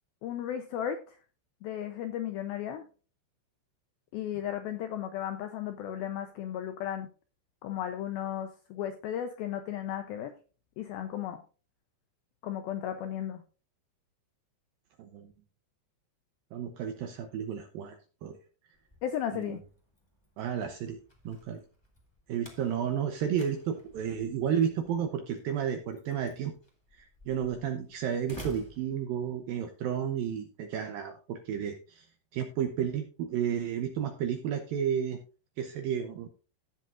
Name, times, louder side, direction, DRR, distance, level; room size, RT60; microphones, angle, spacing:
voice 1, 0.2-1.2 1.6-2.8 4.1-7.1 7.6-10.3 10.8-11.4 12.4-13.4 19.0-19.6, left 10 dB, 85° left, 8 dB, 2.1 m, -35 dB
voice 2, 15.0-15.3 16.5-18.4 19.3-19.6 20.4-21.0 21.3-21.6 22.3-26.5 26.9-32.1 32.3-35.2 35.6-36.3, right 8 dB, 75° right, 6 dB, 2.1 m, -32 dB
Slam, 18.7-29.6, equal, 10° left, 1.1 m, -52 dB
16.0 x 7.6 x 2.5 m, 0.36 s
omnidirectional pair, 5.2 m